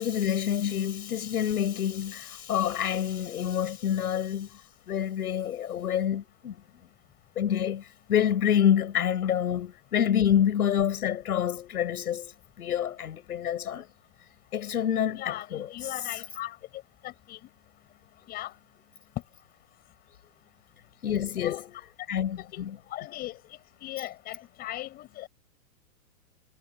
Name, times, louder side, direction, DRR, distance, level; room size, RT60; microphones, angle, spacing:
voice 1, 0.0-4.6 4.9-6.6 7.4-13.9 14.5-15.7 21.0-21.8 22.1-22.8, left 9 dB, 75° left, 7.3 m, -27 dB
voice 2, 15.1-16.6 17.0-17.4 18.3-18.5 21.4-21.6 22.5-22.6 22.9-23.4 23.8-25.3, left 15 dB, 20° left, 6.6 m, -38 dB
hypercardioid pair, 170°, 45 cm